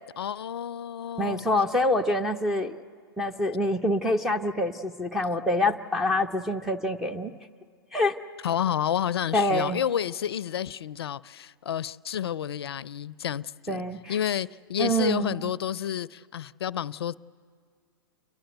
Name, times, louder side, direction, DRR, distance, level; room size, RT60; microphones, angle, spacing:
voice 1, 0.2-1.5 8.4-13.8 14.1-17.2, left 9 dB, 80° left, 20 dB, 0.4 m, -30 dB
voice 2, 1.2-2.7 3.2-7.3 7.9-8.2 9.3-9.8 13.7-14.2 14.8-15.4, left 1 dB, ahead, -1 dB, 0.6 m, -26 dB
29.5 x 11.5 x 7.9 m, 2.1 s
hypercardioid pair, 125°, 13 cm